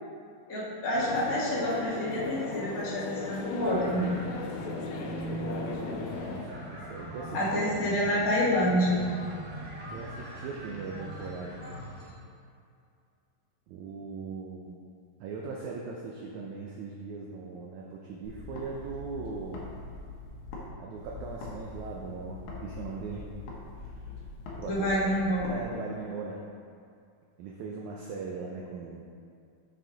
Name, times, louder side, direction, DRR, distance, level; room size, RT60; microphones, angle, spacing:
voice 1, 0.5-4.2 7.3-9.1 24.6-25.6, equal, 40° left, -8 dB, 1.2 m, -28 dB
sound 1, 0.9-6.5, left 4 dB, 85° left, 2.2 m, -37 dB
sound 2, 3.6-12.1, right 1 dB, 55° right, 1.4 m, -41 dB
voice 2, 4.8-8.0 9.9-11.6 13.7-14.8 15.2-19.6 20.8-23.2 23.8-23.9 24.6-24.9 25.5-26.4 27.4-29.0, right 4 dB, 80° right, -2 dB, 1.7 m, -39 dB
sound 3, 18.2-20.7 21.0-25.6, left 3 dB, 65° left, 2.2 m, -43 dB
7.0 x 6.2 x 3.8 m, 2.4 s
omnidirectional pair, 4.0 m